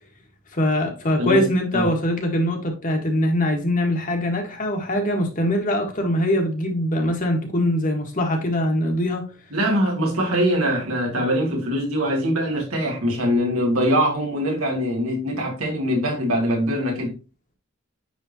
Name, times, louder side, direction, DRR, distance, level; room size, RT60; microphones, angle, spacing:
voice 1, 0.5-9.3, left 1 dB, 40° left, 1.5 m, -22 dB
voice 2, 9.5-17.1, equal, 85° right, 2.5 m, -22 dB
9.5 x 3.6 x 2.8 m
head